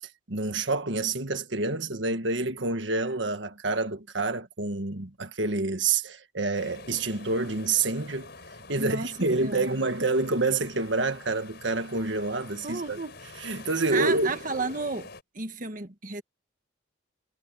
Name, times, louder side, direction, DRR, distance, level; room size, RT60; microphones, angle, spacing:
voice 1, 0.3-8.3 8.7-13.0 13.3-14.4, right 3 dB, 65° right, 1.6 m, -28 dB
sound 1, 6.5-15.2, left 3 dB, 55° left, 5.7 m, -47 dB
voice 2, 8.7-9.1 9.4-9.7 12.6-13.2 13.9-15.1 15.3-16.2, right 4 dB, 40° right, 1.6 m, -32 dB
head